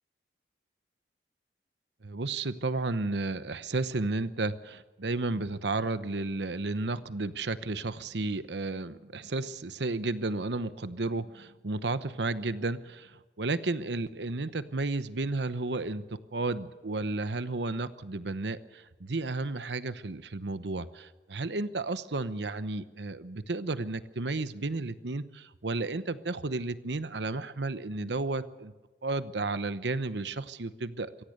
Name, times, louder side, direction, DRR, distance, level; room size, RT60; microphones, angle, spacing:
voice 1, 2.0-28.7 29.0-31.1, right 3 dB, 75° right, 13 dB, 1.0 m, -33 dB
24.0 x 17.0 x 6.7 m, 1.3 s
head